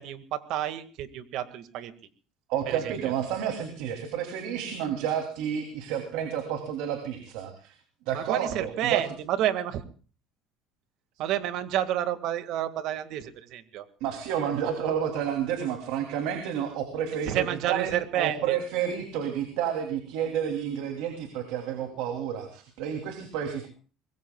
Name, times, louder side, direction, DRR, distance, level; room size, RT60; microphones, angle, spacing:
voice 1, 0.0-1.9 2.7-3.1 8.1-9.8 11.2-13.8 17.3-18.6, right 11 dB, 65° right, 10 dB, 1.8 m, -30 dB
voice 2, 2.5-7.7 8.1-9.0 14.0-23.7, right 9 dB, 80° right, 4 dB, 2.9 m, -30 dB
24.5 x 21.0 x 2.3 m, 0.38 s
cardioid pair, 125°, 0 cm